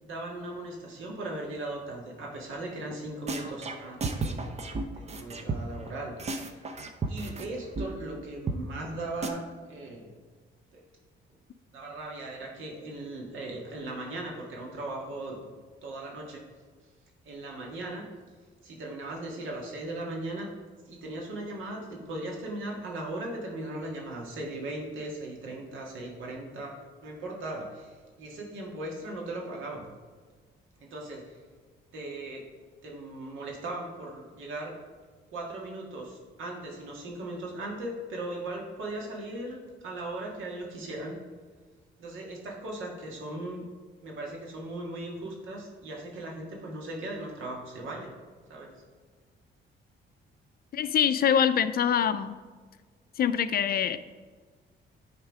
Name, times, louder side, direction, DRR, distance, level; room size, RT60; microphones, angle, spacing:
voice 1, 0.0-4.6 4.9-6.7 7.1-9.4 9.7-10.1 10.7-10.8 11.7-15.4 15.8-16.4 17.2-18.1 18.6-20.5 20.9-26.7 27.0-29.9 30.8-31.4 31.9-32.4 32.8-34.7 35.3-41.2 42.0-43.6 44.0-48.1 48.5-48.7, right 2 dB, 80° right, -1 dB, 1.8 m, -38 dB
sound 1, 2.9-3.0 3.3-5.9 6.2-7.5 7.7-7.9 8.1-8.2 8.5-8.6 8.8-8.9 9.2-9.3, right 3 dB, 35° right, 0.7 m, -33 dB
voice 2, 50.7-52.4 53.2-54.0, left 8 dB, 50° left, 12 dB, 0.4 m, -24 dB
9.5 x 3.7 x 4.8 m, 1.5 s
cardioid pair, 90°, 20 cm